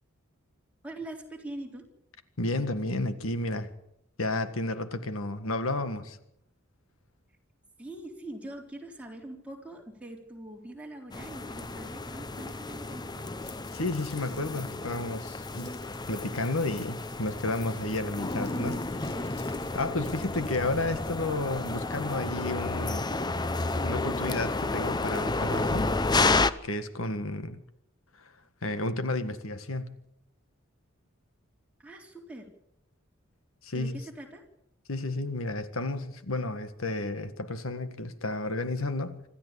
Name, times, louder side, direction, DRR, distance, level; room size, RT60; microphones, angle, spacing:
voice 1, 0.8-1.9 7.8-13.4 31.8-32.5 33.7-34.4, right 1 dB, 5° right, 3.8 m, -43 dB
voice 2, 2.4-3.7 4.2-6.2 13.7-15.8 16.1-19.4 19.7-23.1 23.8-25.9 26.6-27.6 28.2-28.3 28.6-30.0 33.6-34.0 34.9-39.2, left 2 dB, 85° left, 1.8 m, -32 dB
sound 1, 11.1-26.5, left 3 dB, 20° left, 0.7 m, -31 dB
Crumpling crinkling, 13.4-20.8, left 5 dB, 55° left, 5.3 m, -56 dB
26.0 x 13.5 x 8.3 m
head